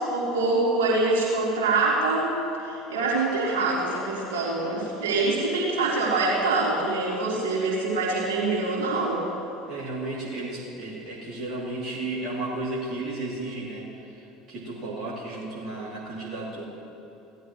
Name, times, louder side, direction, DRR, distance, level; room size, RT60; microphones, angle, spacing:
voice 1, 0.0-2.3 2.6-9.2, right 3 dB, 65° right, -7 dB, 3.6 m, -25 dB
voice 2, 9.7-16.6, right 2 dB, 40° right, -8 dB, 2.7 m, -33 dB
18.5 x 12.5 x 3.1 m, 2.8 s
figure-of-eight pair, 65°, 0 cm